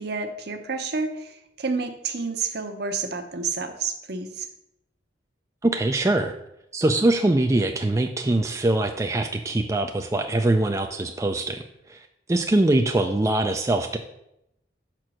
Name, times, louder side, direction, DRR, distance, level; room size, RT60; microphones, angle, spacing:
voice 1, 0.0-4.5, right 4 dB, 60° right, 5 dB, 0.8 m, -30 dB
voice 2, 5.6-6.3 6.7-11.6 11.9-14.0, right 2 dB, 15° right, 4 dB, 0.4 m, -23 dB
6.1 x 4.5 x 6.2 m, 0.82 s
head